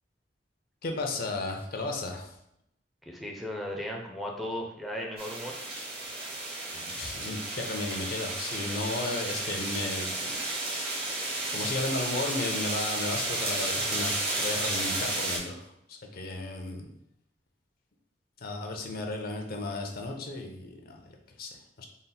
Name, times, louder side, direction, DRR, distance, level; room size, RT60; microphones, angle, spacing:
voice 1, 0.8-2.3 6.7-10.4 11.5-17.0 18.4-21.0 21.4-21.5 21.8-21.9, left 2 dB, 55° left, 3 dB, 0.6 m, -34 dB
voice 2, 3.0-5.6, left 1 dB, ahead, -1 dB, 0.4 m, -36 dB
sound 1, 5.2-15.4, right 2 dB, 60° right, 1.2 m, -32 dB
4.0 x 2.1 x 3.9 m, 0.76 s
head